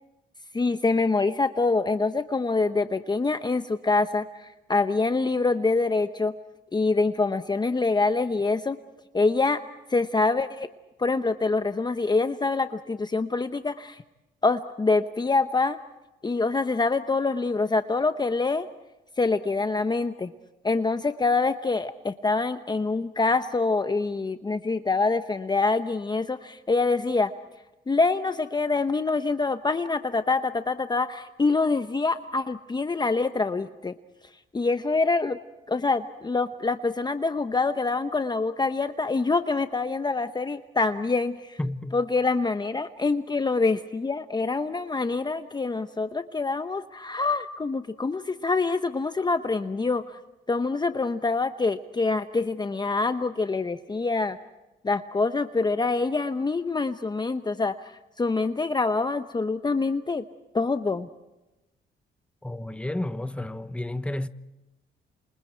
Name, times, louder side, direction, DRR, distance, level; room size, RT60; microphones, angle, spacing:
voice 1, 0.5-6.3 6.7-8.8 9.1-9.6 9.9-10.7 11.0-14.0 14.4-15.8 16.2-18.7 19.2-20.3 20.6-27.3 27.9-33.9 34.5-35.4 35.7-41.6 41.9-50.0 50.5-54.4 54.8-57.9 58.2-60.2 60.5-61.1, left 3 dB, 20° left, 0.9 m, -25 dB
voice 2, 41.6-42.0 62.4-64.3, left 1 dB, 5° left, 1.1 m, -31 dB
29.0 x 27.0 x 4.5 m
cardioid pair, 90°, 20 cm